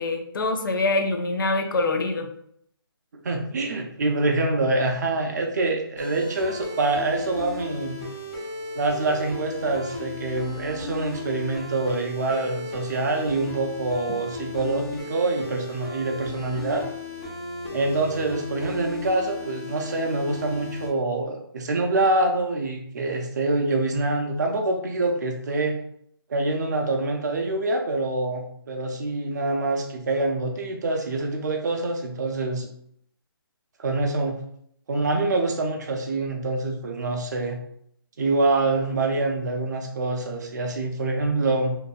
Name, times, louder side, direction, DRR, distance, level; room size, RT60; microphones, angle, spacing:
voice 1, 0.0-2.3, left 2 dB, 55° left, 5 dB, 0.5 m, -24 dB
voice 2, 3.2-8.0 8.7-16.8 17.7-25.8 26.3-32.7 33.8-34.4 34.9-37.6 38.2-41.8, right 2 dB, 45° right, 3 dB, 0.5 m, -25 dB
sound 1, 6.0-20.9, left 2 dB, 25° left, 0.7 m, -36 dB
2.6 x 2.4 x 2.3 m, 0.69 s
figure-of-eight pair, 155°, 13 cm